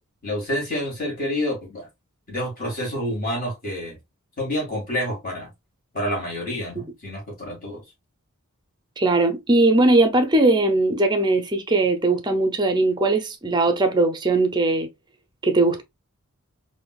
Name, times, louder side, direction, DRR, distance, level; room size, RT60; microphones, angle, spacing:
voice 1, 0.2-1.9 2.3-4.0 4.4-5.5 5.9-7.8, equal, 40° left, 1.9 m, -28 dB
voice 2, 9.0-14.9 15.4-15.8, right 2 dB, 20° right, 0.5 m, -19 dB
3.7 x 2.6 x 2.3 m
head